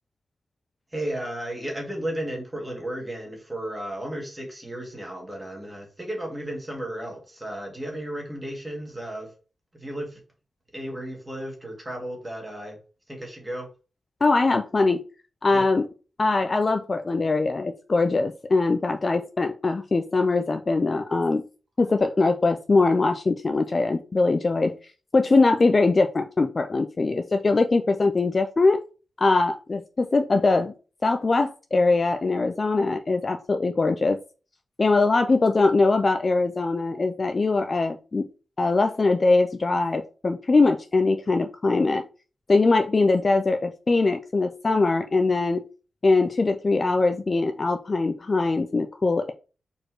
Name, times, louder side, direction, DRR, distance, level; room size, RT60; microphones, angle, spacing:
voice 1, 0.9-9.3 9.7-10.2 10.7-12.8 13.1-13.7 15.5-15.7, right 1 dB, 15° right, 1 dB, 1.8 m, -34 dB
voice 2, 14.2-15.0 15.4-15.9 16.2-21.4 21.8-24.7 25.1-28.8 29.2-30.7 31.0-34.2 34.8-38.3 38.6-42.0 42.5-45.6 46.0-49.3, left 3 dB, 30° left, 6 dB, 0.4 m, -22 dB
4.8 x 4.3 x 4.6 m, 0.35 s
wide cardioid pair, 180°, 0 cm